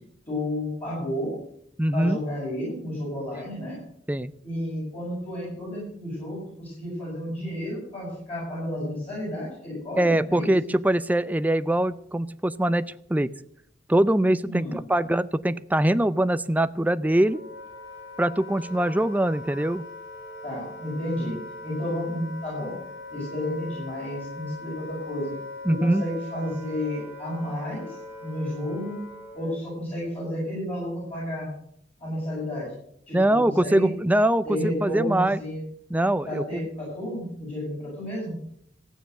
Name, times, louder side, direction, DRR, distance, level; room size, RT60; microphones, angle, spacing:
voice 1, 0.3-1.3 1.9-3.8 4.4-10.5 14.4-14.8 20.4-21.3 21.6-22.7 23.1-25.3 25.7-29.0 29.3-31.5 32.0-32.7 33.1-33.9 34.4-35.6 36.2-38.3, left 1 dB, 35° left, -7 dB, 7.2 m, -31 dB
voice 2, 1.8-2.2 4.1-4.3 10.0-13.3 13.9-17.4 18.2-19.8 25.7-26.0 33.1-35.4 35.9-36.4, right 1 dB, 10° right, 13 dB, 0.4 m, -23 dB
Wind instrument woodwind instrument, 17.0-29.7, left 2 dB, 70° left, 6.7 m, -41 dB
14.5 x 9.3 x 6.6 m, 0.69 s
head